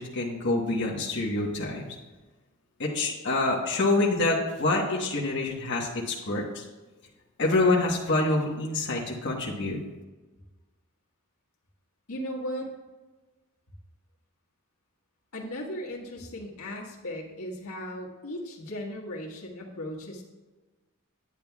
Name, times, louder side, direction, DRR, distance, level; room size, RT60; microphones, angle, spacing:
voice 1, 0.0-1.8 2.8-6.6 7.4-9.8, left 2 dB, 55° left, -3 dB, 1.2 m, -26 dB
voice 2, 12.1-12.7 15.3-20.2, equal, 80° left, -2 dB, 1.6 m, -37 dB
9.7 x 9.0 x 2.3 m, 1.2 s
head